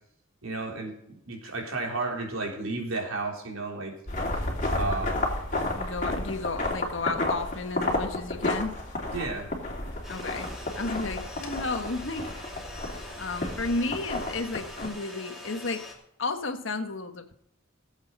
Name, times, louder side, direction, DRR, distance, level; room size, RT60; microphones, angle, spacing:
voice 1, 0.4-3.9 4.7-5.3 9.1-9.5, right 3 dB, 80° right, 1 dB, 3.5 m, -32 dB
sound 1, 4.1-14.9, left 1 dB, 40° left, 3.0 m, -32 dB
voice 2, 5.7-8.7 10.1-10.5 10.8-12.3 13.2-15.8 16.2-17.3, left 3 dB, 65° left, 7 dB, 1.3 m, -32 dB
sound 2, 10.0-15.9, left 1 dB, ahead, 3.0 m, -43 dB
16.5 x 8.1 x 5.4 m, 0.75 s
head